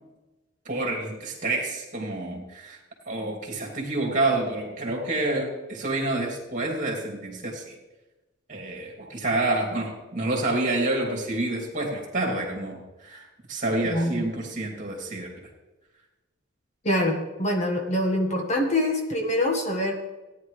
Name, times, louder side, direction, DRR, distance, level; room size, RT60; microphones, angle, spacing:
voice 1, 0.6-2.8 3.1-7.6 8.5-15.3, right 2 dB, 40° right, 0 dB, 2.9 m, -28 dB
voice 2, 13.8-14.2 16.8-19.9, left 1 dB, 35° left, 1 dB, 1.7 m, -25 dB
17.5 x 10.0 x 3.3 m, 1.1 s
head